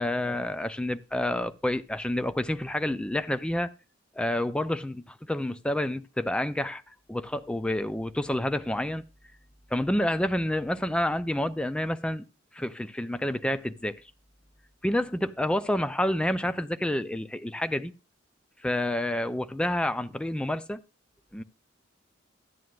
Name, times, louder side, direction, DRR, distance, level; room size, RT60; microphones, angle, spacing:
voice 1, 0.0-3.7 4.2-6.8 7.1-9.0 9.7-12.3 12.5-14.0 14.8-17.9 18.6-20.8 21.3-21.4, left 1 dB, 5° left, 0.4 m, -29 dB
14.0 x 9.3 x 2.4 m
head